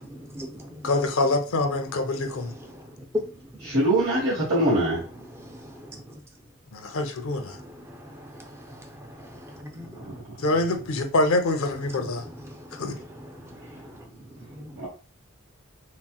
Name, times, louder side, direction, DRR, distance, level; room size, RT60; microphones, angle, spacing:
voice 1, 0.0-0.9 2.3-3.8 5.1-6.2 7.3-10.2 11.7-14.8, left 1 dB, 10° right, 0.4 m, -40 dB
voice 2, 0.8-2.5 6.7-7.6 10.4-12.2 12.8-13.0, left 2 dB, 70° left, 0.5 m, -25 dB
voice 3, 3.7-5.0 14.8-14.9, right 1 dB, 75° right, 1.3 m, -22 dB
4.0 x 2.0 x 2.3 m
head